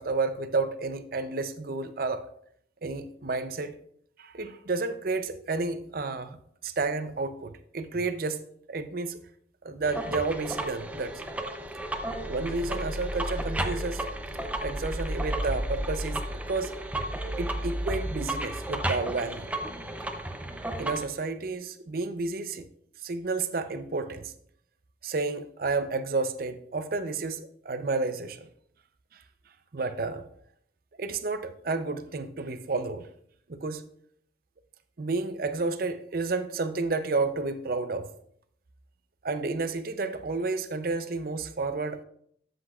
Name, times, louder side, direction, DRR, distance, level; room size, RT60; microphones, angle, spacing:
voice 1, 0.0-2.3 2.8-3.7 4.2-9.2 9.6-11.3 12.3-14.0 14.6-16.7 17.4-19.5 20.8-22.7 23.0-24.3 25.0-28.5 29.1-29.2 29.7-30.2 31.0-33.1 33.5-33.9 35.0-38.1 39.2-42.0, right 3 dB, 50° right, 10 dB, 0.6 m, -31 dB
sound 1, 9.8-21.1, right 1 dB, 10° right, 0.6 m, -33 dB
12.5 x 7.7 x 2.4 m, 0.67 s
head